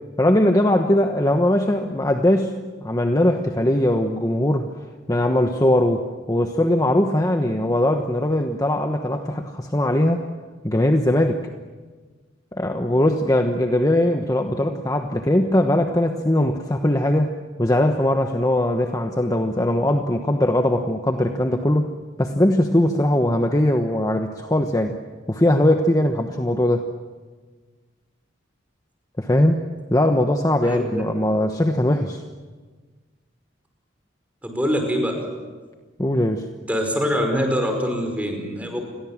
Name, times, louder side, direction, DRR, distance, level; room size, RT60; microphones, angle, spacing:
voice 1, 0.2-2.5 2.8-4.7 5.1-6.0 6.3-10.2 10.6-11.4 12.5-17.3 17.6-21.9 22.2-25.0 25.3-26.9 29.2-29.6 29.9-32.2 36.0-36.4, left 1 dB, 20° left, 5 dB, 1.1 m, -20 dB
voice 2, 30.6-31.0 34.4-35.2 36.7-38.8, equal, 10° right, 3 dB, 5.2 m, -24 dB
30.0 x 22.0 x 7.4 m, 1.4 s
head